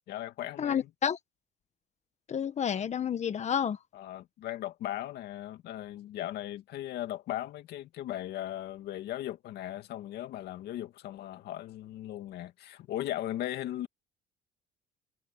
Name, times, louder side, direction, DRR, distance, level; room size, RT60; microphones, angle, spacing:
voice 1, 0.1-0.9 3.9-13.9, left 13 dB, 75° left, 2.3 m, -38 dB
voice 2, 0.6-1.2 2.3-3.8, left 8 dB, 40° left, 1.5 m, -30 dB
cardioid pair, 110°, 17 cm